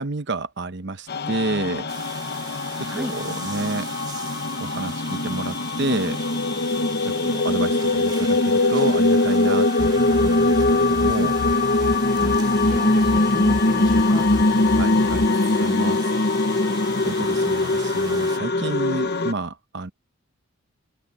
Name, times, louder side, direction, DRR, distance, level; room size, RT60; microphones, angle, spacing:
voice 1, 0.0-1.9 2.8-3.9 4.6-6.2 7.0-11.4 14.8-16.1 17.0-19.9, right 2 dB, 55° right, 0.9 m, -30 dB
sound 1, 1.1-19.3, left 2 dB, 50° left, 1.1 m, -21 dB
sound 2, 1.9-18.4, right 4 dB, 20° right, 2.4 m, -40 dB
sound 3, 9.8-15.3, left 3 dB, 75° left, 0.8 m, -32 dB
voice 2, 12.2-14.2, equal, 5° right, 0.4 m, -33 dB
open air
head